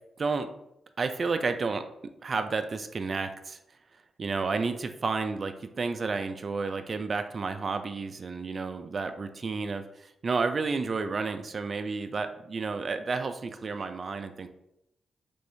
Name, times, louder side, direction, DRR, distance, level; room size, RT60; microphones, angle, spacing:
voice 1, 0.2-0.5 1.0-1.8 2.2-3.6 4.2-14.5, right 4 dB, 50° right, 8 dB, 0.3 m, -31 dB
3.4 x 3.3 x 2.7 m, 0.81 s
cardioid pair, 70°, 0 cm